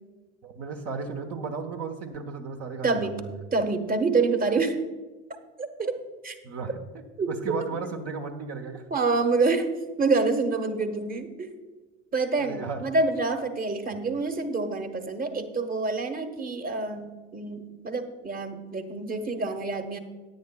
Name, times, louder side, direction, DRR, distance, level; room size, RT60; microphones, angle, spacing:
voice 1, 0.4-3.4 6.4-6.8 7.3-8.8 12.4-12.8, right 5 dB, 40° right, 4 dB, 1.3 m, -34 dB
voice 2, 2.8-3.2 3.5-4.8 5.6-6.0 6.2-6.4 7.2-7.3 8.9-9.7 10.0-11.5 12.1-20.0, right 3 dB, 25° right, 7 dB, 1.4 m, -27 dB
17.5 x 9.5 x 2.4 m, 1.2 s
figure-of-eight pair, 70°, 37 cm